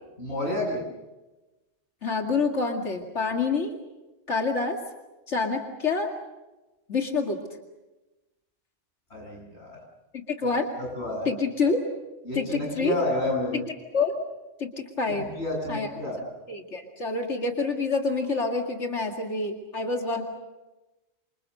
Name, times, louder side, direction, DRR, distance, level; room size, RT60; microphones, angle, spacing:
voice 1, 0.2-0.8 9.1-9.8 10.8-11.3 12.3-13.6 15.1-16.2, left 1 dB, 65° left, -1 dB, 8.5 m, -30 dB
voice 2, 2.0-3.8 4.3-4.8 5.3-6.1 6.9-7.4 10.1-10.7 11.3-11.9 12.3-12.9 13.5-13.6 13.9-14.2 14.6-15.3 15.7-15.9 16.5-20.2, left 4 dB, 80° left, 3 dB, 2.6 m, -27 dB
28.5 x 26.5 x 6.6 m, 1.1 s
omnidirectional pair, 1.2 m